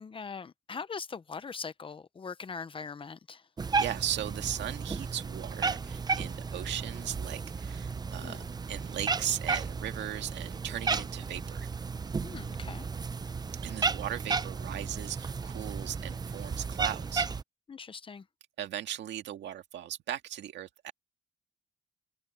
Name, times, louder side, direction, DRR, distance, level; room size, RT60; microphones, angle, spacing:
voice 1, 0.0-3.5 8.2-8.5 12.2-12.9 17.7-18.3, left 5 dB, 30° left, 0.9 m, -41 dB
Cat, 3.6-17.4, right 4 dB, 20° right, 0.6 m, -34 dB
voice 2, 3.8-8.4 8.7-11.7 13.6-17.3 18.6-20.9, right 11 dB, 85° right, 1.9 m, -37 dB
cardioid pair, 140°, 18 cm